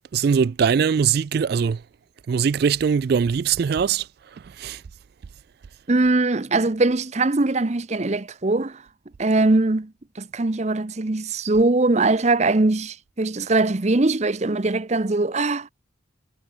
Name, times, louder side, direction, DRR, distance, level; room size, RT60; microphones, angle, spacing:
voice 1, 0.1-1.8 2.3-4.0 4.6-4.8, right 6 dB, 50° right, 0.3 m, -21 dB
voice 2, 5.9-8.8 9.2-15.7, right 2 dB, 35° right, 0.7 m, -21 dB
head